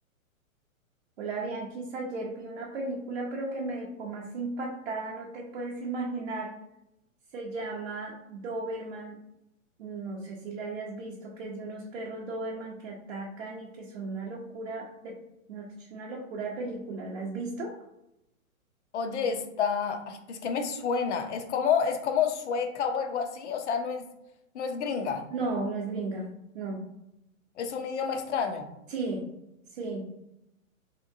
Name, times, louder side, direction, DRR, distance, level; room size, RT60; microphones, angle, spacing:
voice 1, 1.2-6.5 7.3-9.2 9.8-15.2 15.5-17.7 25.3-26.3 26.5-26.8 28.9-29.3 29.7-30.1, right 3 dB, 50° right, -3 dB, 0.7 m, -35 dB
voice 2, 18.9-24.0 24.5-25.3 27.6-28.7, left 6 dB, 55° left, 5 dB, 0.6 m, -29 dB
3.3 x 2.8 x 2.6 m, 0.86 s
hypercardioid pair, 150°, 42 cm